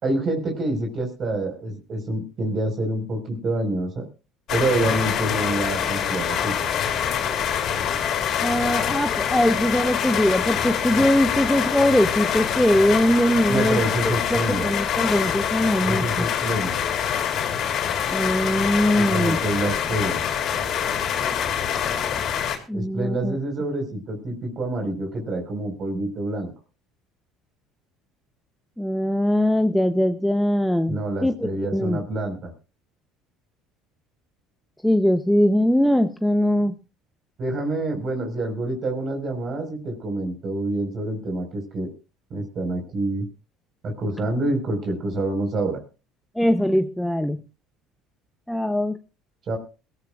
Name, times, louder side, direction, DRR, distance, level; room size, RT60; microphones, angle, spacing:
voice 1, 0.0-4.0 4.5-6.7 13.5-14.7 15.8-16.8 18.9-20.2 22.7-26.5 30.9-32.5 37.4-41.9 42.3-43.3 43.8-45.8 49.5-49.6, right 2 dB, 45° right, 3 dB, 5.2 m, -27 dB
sound 1, 4.5-22.6, left 8 dB, 55° left, 3.5 m, -25 dB
voice 2, 8.4-16.3 18.1-19.4 22.7-23.4 28.8-32.0 34.8-36.7 46.3-47.4 48.5-49.0, left 1 dB, 5° left, 8 dB, 0.9 m, -21 dB
22.0 x 14.0 x 2.5 m, 0.32 s
hypercardioid pair, 75°, 0 cm